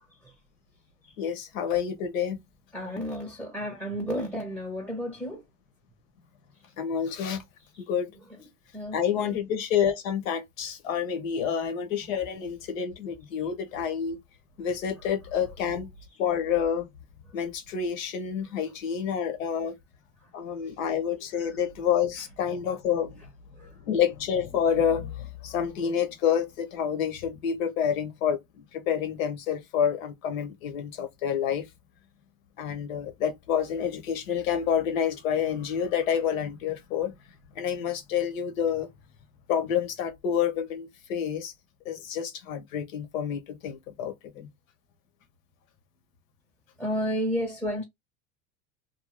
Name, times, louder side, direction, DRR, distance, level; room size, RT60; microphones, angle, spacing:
voice 1, 1.2-2.4 6.8-7.4 7.8-8.1 8.9-14.2 14.6-15.9 16.2-16.9 17.3-19.7 20.3-23.2 23.6-31.7 32.6-37.1 37.5-38.9 39.5-41.5 41.8-44.5, left 8 dB, 85° left, 1.1 m, -28 dB
voice 2, 2.7-5.4 8.7-9.3 23.6-23.7 46.8-47.8, equal, 5° left, 0.7 m, -31 dB
2.7 x 2.3 x 3.0 m
supercardioid pair, 110°, 39 cm